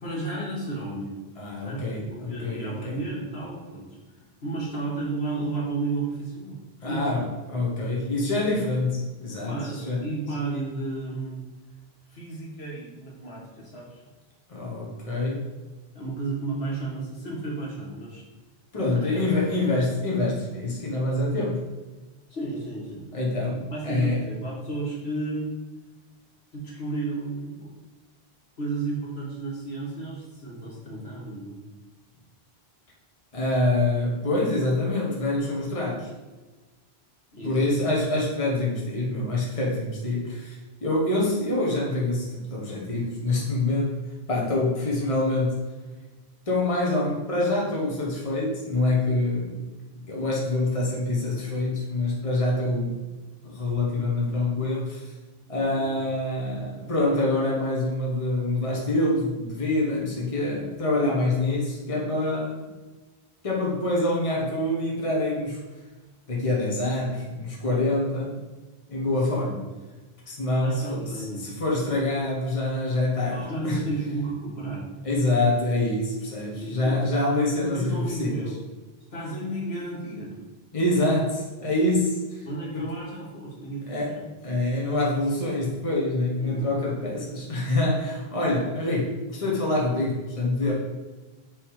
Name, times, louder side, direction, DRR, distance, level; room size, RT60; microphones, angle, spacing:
voice 1, 0.0-1.2 1.6-4.0 4.4-6.6 6.8-7.3 9.5-11.4 12.1-14.0 15.9-18.3 18.7-19.7 22.3-23.1 23.7-25.5 26.5-27.7 28.6-31.6 37.3-37.6 55.7-56.0 69.4-69.7 70.6-71.5 73.3-74.9 76.5-77.0 77.6-78.6 79.1-80.4 82.4-84.3 86.4-86.7 90.7-90.8, right 2 dB, 75° left, -4 dB, 1.9 m, -33 dB
voice 2, 1.4-3.0 6.8-9.6 9.8-10.0 14.5-15.4 18.7-21.6 23.1-24.2 33.3-36.1 37.4-40.6 40.8-44.0 44.3-45.6 46.5-49.6 50.1-53.0 53.4-55.1 55.5-62.7 63.4-65.6 66.3-68.4 68.9-69.6 70.3-73.8 75.0-78.4 80.7-82.2 82.7-82.8 83.9-84.1 84.4-90.7, left 2 dB, 35° left, -4 dB, 1.3 m, -26 dB
6.7 x 3.4 x 4.8 m, 1.2 s
omnidirectional pair, 1.1 m